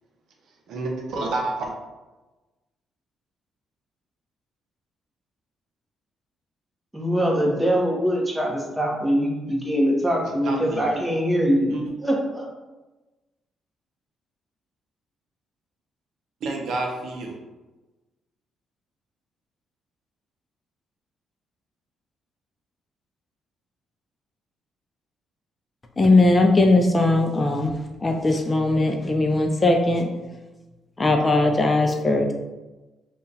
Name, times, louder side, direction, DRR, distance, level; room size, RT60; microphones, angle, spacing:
voice 1, 0.7-1.7 10.4-11.0 11.7-11.8 16.4-17.4, right 2 dB, 70° right, 1 dB, 0.6 m, -29 dB
voice 2, 6.9-12.5, equal, 10° right, -2 dB, 1.0 m, -23 dB
voice 3, 26.0-27.7 28.0-30.1 31.0-32.3, left 2 dB, 30° left, 3 dB, 0.4 m, -19 dB
3.6 x 2.3 x 2.7 m, 1.1 s
supercardioid pair, 55°, 0 cm